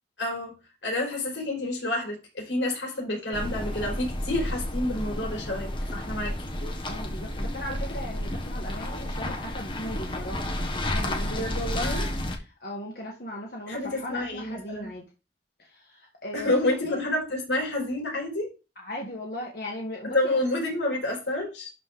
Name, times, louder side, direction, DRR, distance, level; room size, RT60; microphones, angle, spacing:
voice 1, 0.2-0.5 0.8-6.7 11.3-12.1 13.7-14.9 16.3-18.5 20.0-21.7, left 1 dB, 90° left, 4.5 m, -29 dB
sound 1, 3.3-12.4, left 1 dB, 25° left, 1.3 m, -31 dB
voice 2, 6.9-12.1 12.4-15.0 15.6-17.0 18.8-20.4, left 1 dB, 55° left, 1.8 m, -38 dB
11.5 x 4.4 x 3.7 m
head